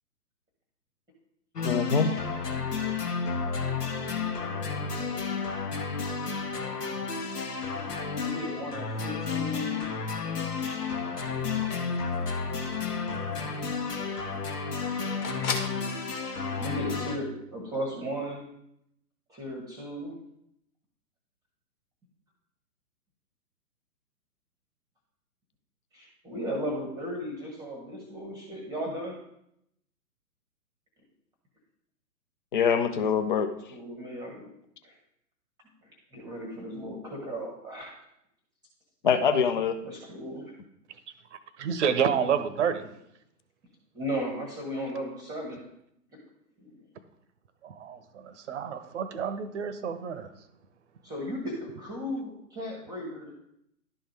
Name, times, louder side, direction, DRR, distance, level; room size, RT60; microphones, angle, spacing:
sound 1, 1.6-17.2, left 5 dB, 75° left, 1.3 m, -32 dB
voice 1, 1.6-2.1 32.5-33.5 39.0-39.8, left 6 dB, 35° left, 9 dB, 0.5 m, -24 dB
voice 2, 8.1-9.9 16.4-18.4 19.3-20.1 25.9-29.2 33.7-34.5 34.8-34.9 36.1-37.9 39.8-40.5 43.9-45.6 46.6-46.8 51.0-53.3, equal, 10° right, -1 dB, 1.0 m, -35 dB
sound 2, 10.7-15.8, left 4 dB, 60° left, 1.5 m, -41 dB
voice 3, 41.3-42.9 47.6-50.3, right 7 dB, 45° right, 11 dB, 0.8 m, -29 dB
11.5 x 3.8 x 4.8 m, 0.78 s
figure-of-eight pair, 125°, 48 cm